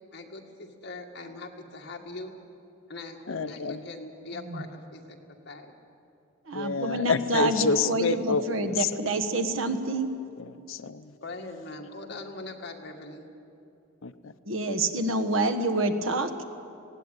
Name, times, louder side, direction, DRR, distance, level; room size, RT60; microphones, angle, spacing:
voice 1, 0.1-2.3 2.9-5.2 5.5-5.7 11.2-13.3, left 2 dB, 55° left, 2 dB, 2.0 m, -41 dB
voice 2, 3.3-3.8 6.5-8.9 10.4-11.1 14.0-14.3, left 4 dB, 70° left, 12 dB, 0.7 m, -28 dB
voice 3, 6.5-10.1 14.5-16.4, right 2 dB, 70° right, 8 dB, 1.4 m, -27 dB
19.0 x 17.5 x 9.1 m, 2.6 s
head